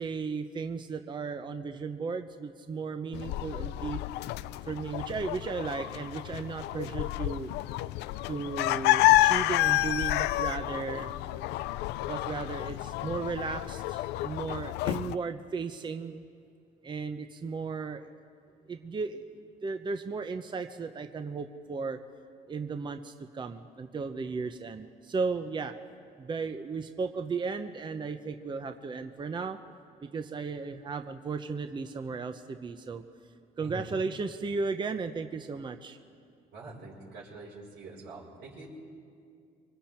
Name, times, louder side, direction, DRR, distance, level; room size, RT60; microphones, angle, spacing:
voice 1, 0.0-4.0 4.6-7.5 8.3-11.1 12.0-16.2 16.8-18.1 18.7-22.0 22.5-25.7 26.2-29.6 30.0-33.0 33.6-36.0, right 4 dB, 25° right, 8 dB, 0.8 m, -35 dB
sound 1, 3.1-15.2, left 16 dB, 85° left, 0.4 m, -29 dB
voice 2, 33.6-34.0 36.5-38.7, right 2 dB, 85° right, -7 dB, 5.9 m, -45 dB
26.0 x 23.5 x 4.5 m, 2.3 s
cardioid pair, 110°, 17 cm